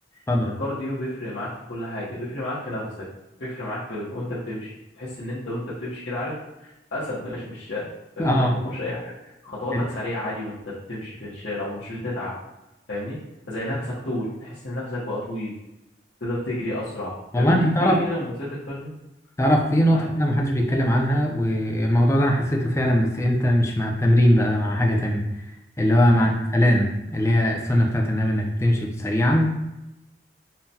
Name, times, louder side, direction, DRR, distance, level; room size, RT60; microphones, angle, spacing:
voice 1, 0.1-3.1 3.4-12.3 12.9-13.2 13.5-15.5 16.2-18.9 19.9-20.1 26.1-26.3, left 1 dB, 80° left, -10 dB, 1.0 m, -31 dB
voice 2, 8.2-8.6 9.7-9.8 13.7-13.8 17.3-18.0 19.4-25.5 25.8-29.6, equal, 15° left, 1 dB, 0.4 m, -20 dB
5.6 x 2.2 x 2.7 m, 0.95 s
head